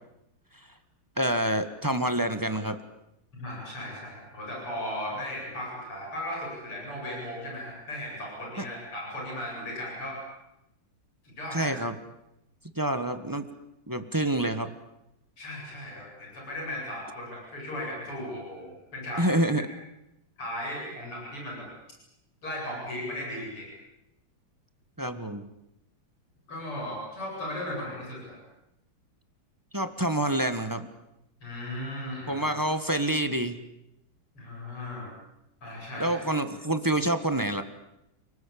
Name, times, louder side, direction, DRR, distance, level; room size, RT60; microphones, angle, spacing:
voice 1, 1.2-2.8 11.5-11.9 12.8-13.5 13.9-14.7 19.2-19.6 25.0-25.4 29.7-30.9 32.3-33.6 36.0-37.6, right 1 dB, 10° right, 8 dB, 1.1 m, -27 dB
voice 2, 3.3-10.2 11.2-11.7 15.4-19.3 20.4-21.7 22.4-23.7 26.5-28.4 31.4-32.5 34.4-35.1 35.6-36.2, left 1 dB, 85° left, -2 dB, 9.1 m, -36 dB
29.5 x 20.0 x 8.6 m, 0.85 s
omnidirectional pair, 2.4 m